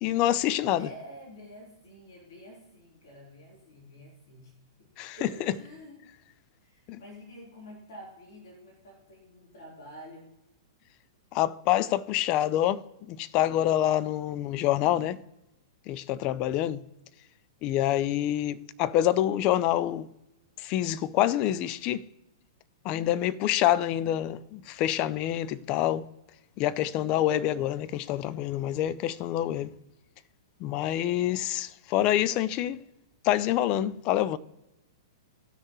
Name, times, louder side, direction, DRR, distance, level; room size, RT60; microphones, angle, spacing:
voice 1, 0.0-0.9 5.0-5.5 6.9-7.0 11.3-15.2 15.9-16.8 17.6-20.1 20.6-22.0 22.8-26.1 26.6-29.7 30.6-32.8 33.2-34.4, left 12 dB, 35° left, 0.5 m, -26 dB
voice 2, 0.8-4.9 5.2-6.0 6.6-10.3 24.2-24.5 31.0-31.4, equal, 55° left, 3.7 m, -49 dB
18.0 x 6.4 x 3.2 m
figure-of-eight pair, 105°, 2 cm